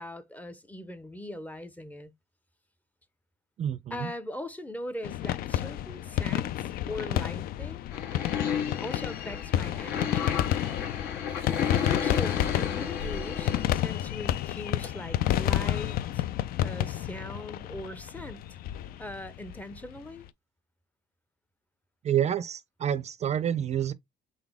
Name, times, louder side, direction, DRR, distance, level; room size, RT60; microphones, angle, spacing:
voice 1, 0.0-2.1 3.9-7.9 8.8-10.5 12.0-16.3 16.6-18.5 19.0-20.3, left 1 dB, 10° left, 0.6 m, -40 dB
voice 2, 3.6-4.1 22.0-23.9, right 10 dB, 40° right, 0.4 m, -28 dB
sound 1, 5.0-20.0, left 12 dB, 60° left, 0.4 m, -30 dB
sound 2, 7.9-14.4 14.8-14.9 15.2-15.3 15.7-15.8 16.0-16.1, left 7 dB, 80° left, 1.7 m, -33 dB
4.0 x 3.3 x 3.4 m
cardioid pair, 110°, 17 cm